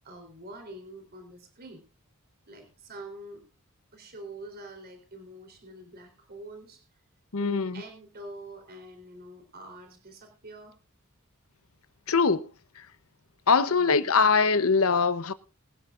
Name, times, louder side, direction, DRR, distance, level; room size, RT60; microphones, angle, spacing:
voice 1, 0.0-1.8 2.5-3.4 3.9-6.8 7.4-10.7 13.7-14.0, right 1 dB, 45° right, 3.8 m, -45 dB
voice 2, 7.3-7.7 12.1-12.4 13.5-15.3, left 5 dB, 75° left, 0.9 m, -22 dB
23.0 x 9.8 x 2.6 m
head